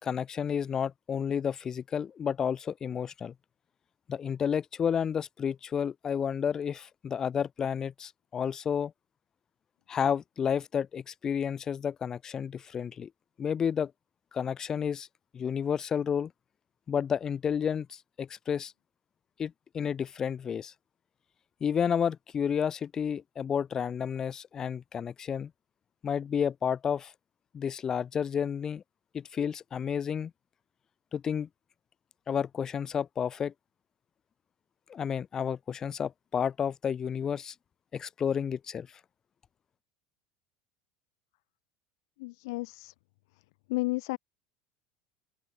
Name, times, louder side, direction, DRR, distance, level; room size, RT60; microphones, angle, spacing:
voice 1, 0.0-3.3 4.1-8.9 9.9-13.1 13.4-13.9 14.3-15.1 15.3-16.3 16.9-18.7 19.4-20.7 21.6-25.5 26.0-27.1 27.5-28.8 29.1-30.3 31.1-31.5 32.3-33.5 34.9-37.5 37.9-38.9, left 7 dB, 25° left, 3.1 m, -31 dB
voice 2, 42.2-42.9 43.7-44.2, left 23 dB, 75° left, 5.9 m, -32 dB
open air
cardioid pair, 150°, 2 cm